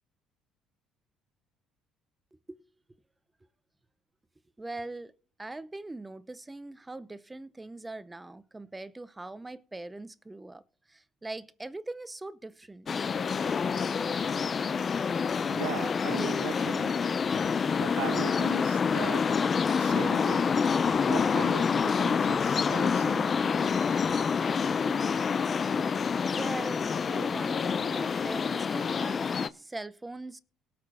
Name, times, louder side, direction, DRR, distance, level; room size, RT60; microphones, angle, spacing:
voice 1, 4.6-5.1 5.4-10.6 10.9-13.1 25.1-25.2 26.4-30.4, right 2 dB, 15° right, 0.7 m, -41 dB
sound 1, 12.9-29.5, left 6 dB, 40° left, 0.6 m, -27 dB
voice 2, 15.5-17.0 17.8-19.3 19.8-20.5 21.1-23.3, right 16 dB, 80° right, 0.5 m, -39 dB
18.0 x 6.1 x 4.3 m
supercardioid pair, 80°, 0 cm